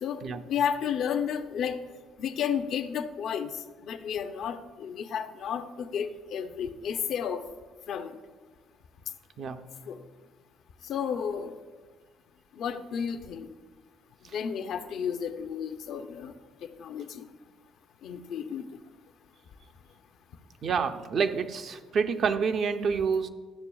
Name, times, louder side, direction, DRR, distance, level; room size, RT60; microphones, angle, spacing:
voice 1, 0.5-1.8 2.2-3.5 3.8-7.4 7.9-8.2 9.9-10.0 10.9-11.6 12.6-13.5 14.3-16.3 16.8-17.2 18.0-18.6, left 7 dB, 70° left, 8 dB, 0.5 m, -32 dB
voice 2, 9.4-9.7 14.2-14.4 20.6-23.3, right 5 dB, 60° right, 8 dB, 0.5 m, -28 dB
12.0 x 6.7 x 2.3 m, 1.4 s
supercardioid pair, 75°, 0 cm